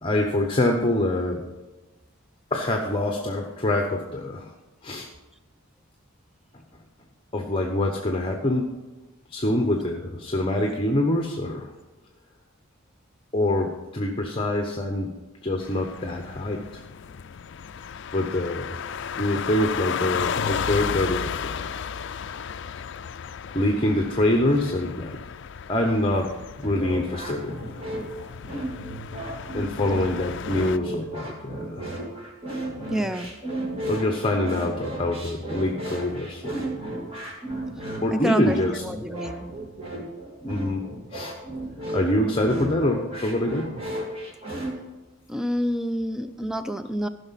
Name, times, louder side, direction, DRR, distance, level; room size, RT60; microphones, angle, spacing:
voice 1, 0.0-1.4 2.5-4.5 4.8-5.1 7.3-8.8 9.3-11.7 13.3-15.1 15.4-16.8 18.1-18.7 19.2-21.8 23.5-25.2 25.7-26.3 26.6-27.8 29.5-31.9 33.8-36.7 38.0-38.8 40.4-40.8 41.1-41.3 41.9-43.7 46.3-46.6, left 1 dB, 25° left, 2 dB, 0.9 m, -25 dB
sound 1, 15.6-30.8, left 7 dB, 60° left, 0.4 m, -34 dB
sound 2, 26.6-44.7, right 1 dB, 25° right, 2.4 m, -34 dB
voice 2, 32.9-33.3 38.1-39.5 45.3-47.1, equal, 5° right, 10 dB, 0.4 m, -28 dB
14.5 x 5.9 x 5.7 m, 1.1 s
head